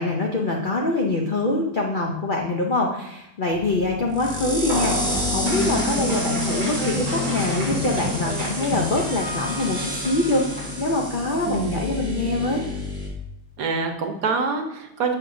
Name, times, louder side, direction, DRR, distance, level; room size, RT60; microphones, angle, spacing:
voice 1, 0.0-12.6, left 2 dB, 80° left, 0 dB, 0.4 m, -24 dB
sound 1, 3.5-13.1, equal, 5° left, 1.0 m, -30 dB
sound 2, 4.7-7.2 7.6-7.7, left 1 dB, 35° left, 2.1 m, -33 dB
sound 3, 5.5-11.1, left 2 dB, 25° right, 1.6 m, -29 dB
voice 2, 11.4-11.8 13.6-15.2, right 4 dB, 65° right, 4 dB, 1.1 m, -25 dB
6.6 x 6.2 x 2.6 m, 0.86 s
omnidirectional pair, 1.8 m